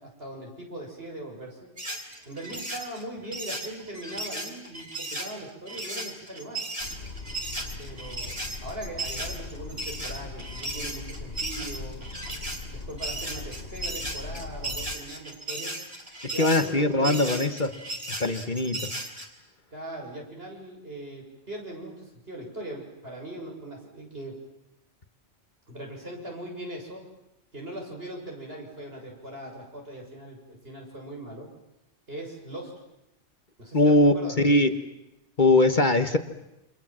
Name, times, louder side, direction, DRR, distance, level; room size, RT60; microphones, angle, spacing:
voice 1, 0.0-1.7 2.3-6.7 7.8-12.0 12.7-15.7 16.2-17.5 19.7-24.4 25.7-27.1 27.5-31.5 32.1-32.8 33.6-34.6, right 1 dB, 55° right, 0 dB, 7.3 m, -40 dB
sound 1, 1.8-19.3, right 1 dB, 30° right, 4.2 m, -35 dB
sound 2, 6.8-14.9, left 3 dB, 60° left, 1.6 m, -40 dB
voice 2, 16.4-17.7 18.2-18.9 33.7-34.1 34.4-34.7 35.4-36.2, left 2 dB, 40° left, 8 dB, 1.5 m, -21 dB
29.5 x 26.5 x 7.6 m, 0.90 s
omnidirectional pair, 1.2 m